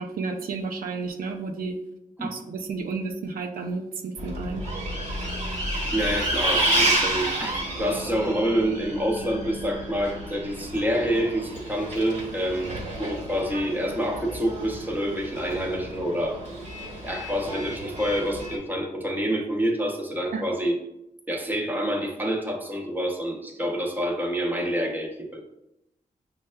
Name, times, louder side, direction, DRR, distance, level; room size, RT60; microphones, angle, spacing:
voice 1, 0.0-1.8 2.2-4.6 20.3-20.4, right 4 dB, 85° right, 4 dB, 0.4 m, -32 dB
Bus, 4.2-18.6, right 1 dB, 50° right, 1.3 m, -30 dB
voice 2, 5.9-16.4 17.0-20.8 21.3-25.4, equal, 10° right, 1 dB, 0.8 m, -27 dB
6.1 x 2.2 x 2.2 m, 0.85 s
cardioid pair, 70°, 15 cm